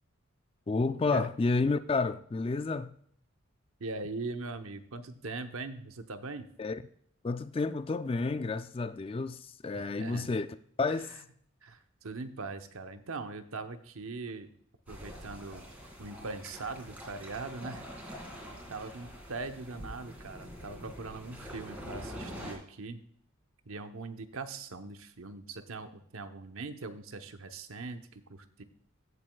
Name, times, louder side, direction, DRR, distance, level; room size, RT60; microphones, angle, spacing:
voice 1, 0.7-3.0 6.6-6.8 7.2-10.5 10.8-11.1, left 3 dB, 25° left, 0.3 m, -30 dB
voice 2, 3.8-6.5 9.7-10.3 10.9-11.2 11.6-14.5 14.9-15.7 16.0-17.9 18.7-23.0 23.7-28.6, right 3 dB, 80° right, 0.9 m, -41 dB
sound 1, 14.9-22.5, equal, 5° right, 2.4 m, -45 dB
15.0 x 7.7 x 2.3 m
head